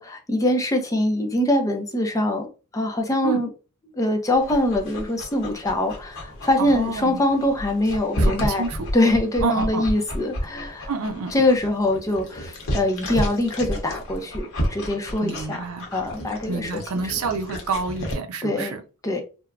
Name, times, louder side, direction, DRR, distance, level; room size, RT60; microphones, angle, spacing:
voice 1, 0.0-2.5 2.7-3.5 4.0-8.6 8.9-10.9 11.3-15.6 15.9-16.7 18.4-18.7 19.0-19.2, left 1 dB, 15° left, 0.5 m, -23 dB
Dog, 4.3-18.1, equal, 65° left, 0.9 m, -31 dB
voice 2, 6.6-7.2 8.2-8.9 9.4-9.9 10.9-11.3 15.2-15.9 16.5-18.8, right 4 dB, 70° right, 0.5 m, -28 dB
3.5 x 2.1 x 2.3 m
head